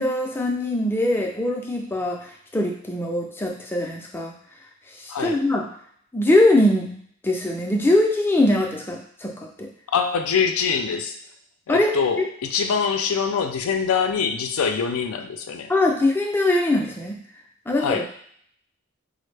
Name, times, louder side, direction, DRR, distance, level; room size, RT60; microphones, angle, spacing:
voice 1, 0.0-2.2 2.5-4.3 5.0-5.7 6.1-6.9 7.2-9.7 11.7-11.9 15.7-17.2 17.7-18.0, left 1 dB, 10° left, 1 dB, 0.3 m, -22 dB
voice 2, 5.1-5.4 9.9-11.2 11.7-15.7 17.8-18.1, left 6 dB, 85° left, 7 dB, 0.4 m, -24 dB
4.2 x 2.0 x 3.2 m, 0.63 s
head